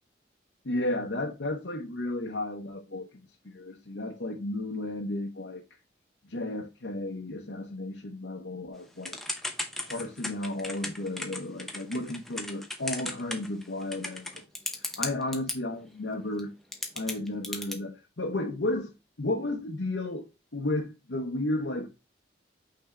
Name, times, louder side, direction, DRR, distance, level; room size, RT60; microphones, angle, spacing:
voice 1, 0.6-3.1 3.4-5.6 6.2-9.2 9.8-14.4 14.8-16.5 16.9-18.9 19.2-21.9, left 2 dB, 75° left, 1.0 m, -33 dB
Typing / Telephone, 9.0-15.6 16.4-16.5 16.7-17.7, left 1 dB, ahead, 0.8 m, -35 dB
6.0 x 3.8 x 4.3 m
head